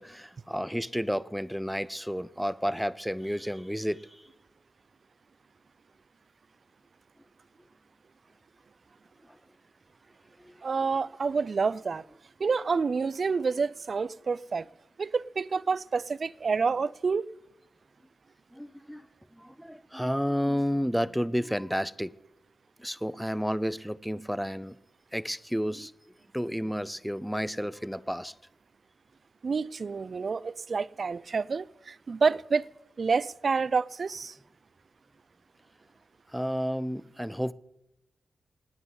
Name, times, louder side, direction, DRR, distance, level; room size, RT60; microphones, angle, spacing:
voice 1, 0.0-4.2 10.4-10.6 18.5-19.1 19.4-22.1 22.8-24.8 25.1-25.9 26.3-28.3 36.3-37.5, equal, ahead, 0.5 m, -31 dB
voice 2, 10.6-12.1 12.4-14.7 15.0-17.3 29.4-32.7 33.0-34.4, right 5 dB, 55° right, 0.4 m, -28 dB
27.0 x 9.7 x 3.9 m
cardioid pair, 80°, 0 cm